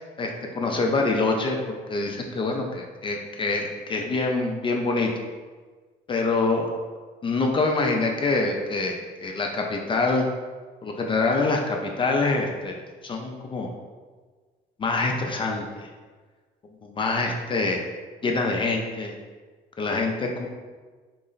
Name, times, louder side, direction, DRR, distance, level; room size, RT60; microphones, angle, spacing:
voice 1, 0.2-5.1 6.1-6.7 7.2-10.3 10.8-13.7 14.8-15.9 16.8-17.8 18.2-19.1 19.8-20.5, left 3 dB, 30° left, 1 dB, 0.4 m, -25 dB
3.8 x 2.1 x 3.8 m, 1.4 s
cardioid pair, 110°, 17 cm